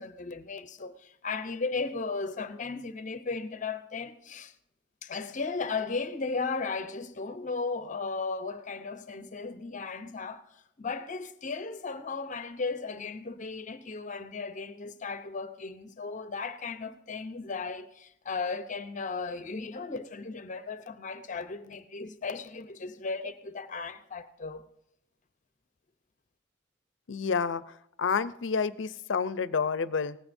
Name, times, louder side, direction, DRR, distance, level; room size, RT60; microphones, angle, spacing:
voice 1, 0.0-4.5 5.0-10.4 10.8-24.6, left 4 dB, 45° left, 0.7 m, -36 dB
voice 2, 27.1-30.2, left 5 dB, 75° left, 0.5 m, -29 dB
18.0 x 15.0 x 2.6 m
head